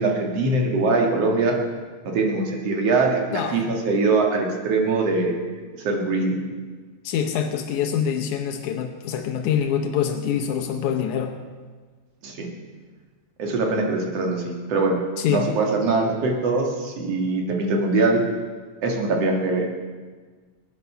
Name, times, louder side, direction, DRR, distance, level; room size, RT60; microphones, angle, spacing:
voice 1, 0.0-1.6 2.0-5.3 5.8-6.4 12.2-12.5 13.4-15.0 15.3-18.2 18.8-19.7, right 3 dB, 55° right, 1 dB, 2.8 m, -22 dB
voice 2, 7.0-11.4 15.2-15.5, left 8 dB, 80° left, 6 dB, 2.3 m, -25 dB
21.5 x 9.6 x 5.6 m, 1.4 s
omnidirectional pair, 3.4 m